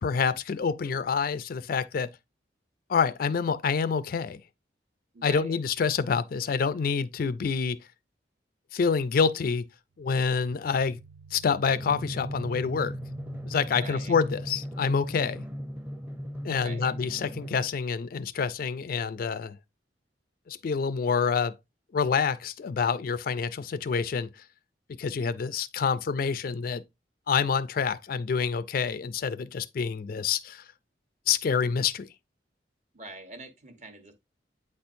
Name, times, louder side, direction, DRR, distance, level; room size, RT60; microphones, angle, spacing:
voice 1, 0.0-2.1 2.9-4.4 5.2-7.8 8.7-9.7 10.0-11.0 11.3-12.9 13.4-15.4 16.4-19.6 20.5-21.5 21.9-24.3 25.0-26.8 27.3-30.6 31.3-32.1, left 6 dB, 55° left, 0.4 m, -27 dB
voice 2, 5.1-5.6 13.8-14.2 16.6-16.9 32.9-34.1, right 2 dB, 40° right, 1.2 m, -44 dB
sound 1, 10.0-14.7, right 5 dB, 70° right, 0.5 m, -51 dB
Drum, 11.7-17.7, equal, 10° right, 0.7 m, -37 dB
8.5 x 4.3 x 2.5 m
head